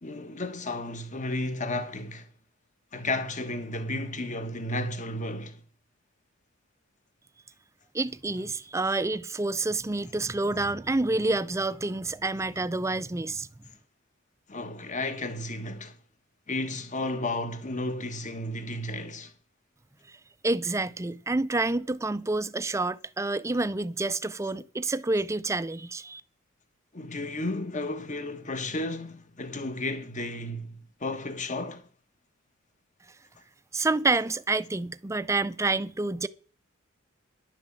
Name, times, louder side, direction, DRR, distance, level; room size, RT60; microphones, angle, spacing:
voice 1, 0.0-2.3 2.9-5.6 14.5-15.9 16.5-19.3 26.9-31.9, left 2 dB, 35° left, 1.4 m, -33 dB
voice 2, 7.9-13.5 20.1-20.2 20.4-26.2 33.7-36.3, right 2 dB, 15° right, 0.5 m, -28 dB
11.0 x 7.5 x 7.5 m
head